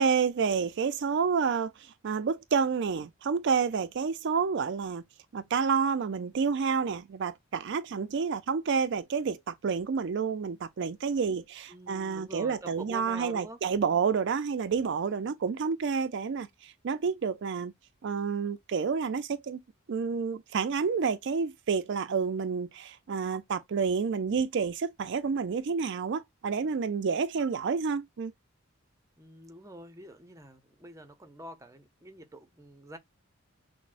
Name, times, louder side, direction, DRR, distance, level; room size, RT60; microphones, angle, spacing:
voice 1, 0.0-5.0 5.3-17.7 18.0-19.6 19.9-28.3, right 5 dB, 55° right, 0.4 m, -29 dB
voice 2, 11.7-13.6 29.2-33.0, right 1 dB, 15° right, 0.6 m, -46 dB
5.9 x 2.1 x 2.4 m
head